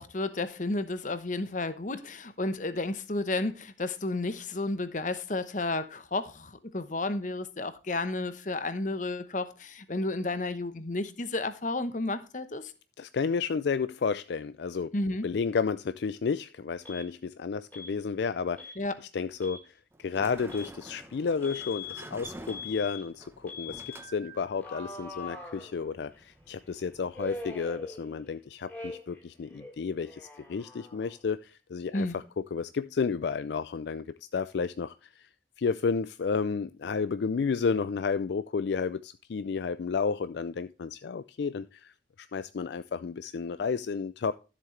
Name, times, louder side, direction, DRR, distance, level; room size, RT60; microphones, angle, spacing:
voice 1, 0.0-12.7 14.9-15.3 18.8-18.9 31.9-32.1, left 2 dB, 45° left, 0.9 m, -32 dB
voice 2, 13.0-14.9 15.2-18.7 19.1-19.6 20.0-23.8 24.1-32.2 32.5-34.0 34.3-35.2 35.6-41.9 42.2-44.3, left 5 dB, 65° left, 0.4 m, -31 dB
Alarm, 16.8-17.1 17.7-17.9 18.6-18.8 19.3-19.6 20.5-20.7 21.4-22.0 22.5-23.0 23.5-24.0 24.6-26.1 27.1-28.3 28.7-29.2 29.5-31.2, left 3 dB, 10° left, 2.7 m, -42 dB
Sliding door, 19.9-27.5, right 2 dB, 15° right, 0.9 m, -49 dB
13.0 x 7.5 x 3.2 m
head